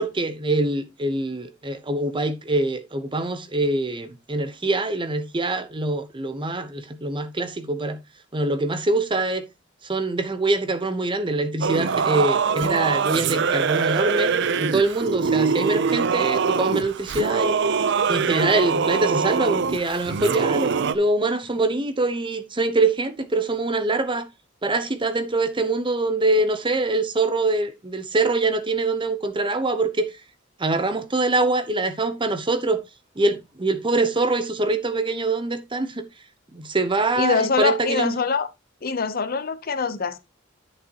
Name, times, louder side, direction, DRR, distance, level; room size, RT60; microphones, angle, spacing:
voice 1, 0.0-8.0 8.3-9.5 9.8-14.3 14.6-17.5 18.1-24.3 24.6-30.1 30.6-32.8 33.2-36.0 36.5-38.2, right 2 dB, 25° right, 0.9 m, -24 dB
Singing / Musical instrument, 11.6-21.0, right 5 dB, 60° right, 0.5 m, -23 dB
voice 2, 37.2-38.5 38.8-40.2, left 5 dB, 50° left, 0.8 m, -24 dB
11.0 x 6.5 x 2.9 m
head